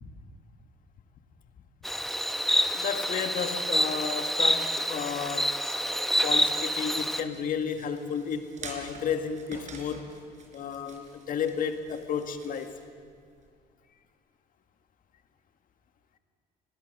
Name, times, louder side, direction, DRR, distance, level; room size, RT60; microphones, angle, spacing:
Insect, 1.8-7.2, equal, ahead, 1.0 m, -27 dB
voice 1, 2.7-5.6 6.2-10.1 10.5-12.8, left 7 dB, 55° left, 7 dB, 1.8 m, -32 dB
sound 1, 4.5-13.5, right 4 dB, 45° right, 4.3 m, -49 dB
24.5 x 20.5 x 6.7 m, 2.2 s
cardioid pair, 110°, 17 cm